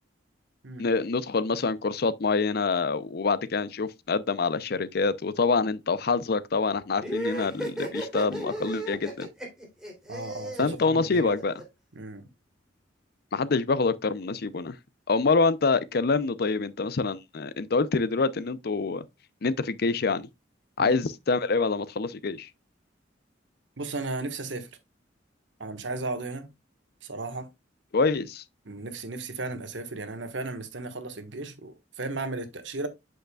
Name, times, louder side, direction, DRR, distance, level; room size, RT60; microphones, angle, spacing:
voice 1, 0.8-9.3 10.6-11.5 13.3-14.7 15.1-19.0 19.4-20.3 20.8-22.5 27.9-28.4, left 4 dB, 55° left, 0.6 m, -26 dB
sound 1, 7.0-11.6, right 1 dB, 5° right, 2.9 m, -34 dB
voice 2, 10.1-11.3 12.0-12.2 20.8-21.0 23.8-24.7 25.6-26.5 27.0-27.5 28.6-32.9, right 3 dB, 75° right, 1.4 m, -35 dB
7.9 x 6.5 x 2.3 m
head